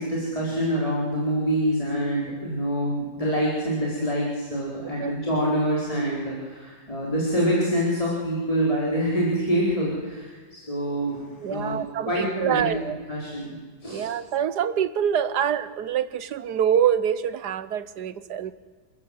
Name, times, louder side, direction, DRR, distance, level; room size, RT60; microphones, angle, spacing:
voice 1, 0.0-11.8 12.1-12.7 13.1-14.1, equal, 20° left, -5 dB, 4.3 m, -26 dB
voice 2, 11.4-13.0 13.9-18.5, right 9 dB, 85° right, 15 dB, 1.5 m, -25 dB
27.0 x 14.5 x 7.9 m, 1.4 s
omnidirectional pair, 1.7 m